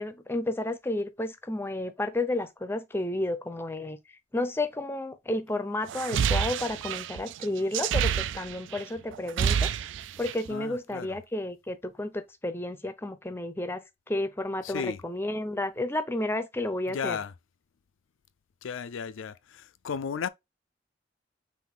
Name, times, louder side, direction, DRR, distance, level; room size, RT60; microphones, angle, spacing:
voice 1, 0.0-4.0 4.3-9.7 10.2-17.2, left 1 dB, 10° left, 0.5 m, -31 dB
sound 1, 5.9-8.8 9.1-10.5, right 7 dB, 65° right, 0.3 m, -28 dB
voice 2, 10.5-11.2 14.6-15.0 16.9-17.3 18.6-20.3, left 6 dB, 85° left, 0.4 m, -34 dB
5.9 x 2.5 x 3.5 m
head